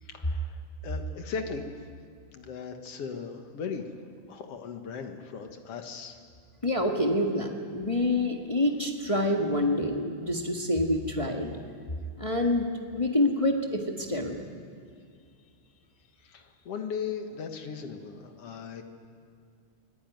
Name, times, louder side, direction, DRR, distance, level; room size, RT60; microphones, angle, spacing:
voice 1, 0.0-1.7 2.3-3.8 4.3-6.2 16.2-18.8, left 6 dB, 55° left, 5 dB, 2.2 m, -38 dB
voice 2, 6.6-11.5 12.2-14.4, left 1 dB, 30° left, 1 dB, 0.5 m, -27 dB
24.5 x 16.0 x 9.2 m, 2.2 s
omnidirectional pair, 3.6 m